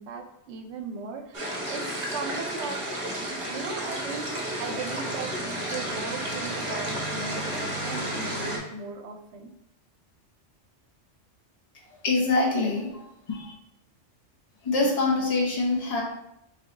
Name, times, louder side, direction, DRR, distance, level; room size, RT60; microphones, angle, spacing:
voice 1, 0.0-2.8 3.2-9.5, right 5 dB, 75° right, 5 dB, 0.8 m, -37 dB
sound 1, 1.3-8.6, right 1 dB, 30° right, 0.8 m, -32 dB
voice 2, 12.0-13.0 13.3-13.5 14.6-16.0, left 3 dB, 35° left, -2 dB, 0.8 m, -24 dB
3.4 x 2.9 x 3.8 m, 0.82 s
omnidirectional pair, 1.2 m